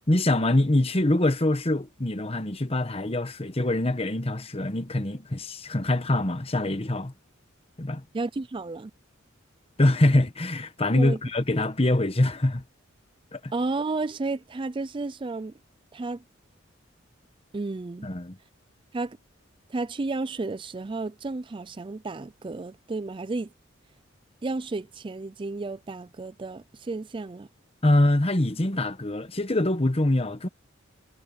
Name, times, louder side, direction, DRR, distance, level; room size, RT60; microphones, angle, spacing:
voice 1, 0.1-7.1 7.8-8.0 9.8-12.6 13.3-13.5 18.0-18.4 27.8-30.5, left 1 dB, 30° left, 1.2 m, -24 dB
voice 2, 8.1-8.9 10.9-11.2 13.5-15.5 15.9-16.2 17.5-18.1 18.9-19.2 19.7-23.5 24.4-27.5, right 3 dB, 25° right, 0.4 m, -32 dB
head